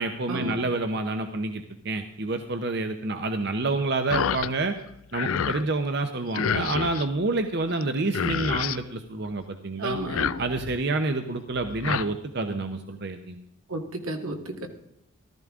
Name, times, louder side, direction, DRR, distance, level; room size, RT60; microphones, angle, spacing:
voice 1, 0.0-4.8 5.1-10.0 10.4-13.4, right 3 dB, 55° right, 7 dB, 0.8 m, -28 dB
sound 1, 4.1-4.5 4.9-5.6 6.3-7.1 7.8-7.9 8.1-8.8 9.9-10.8 11.6-12.0, left 7 dB, 80° left, 0.4 m, -28 dB
voice 2, 9.8-10.4 13.7-14.7, right 1 dB, 85° right, 4 dB, 1.9 m, -32 dB
14.5 x 13.5 x 3.7 m, 0.78 s
head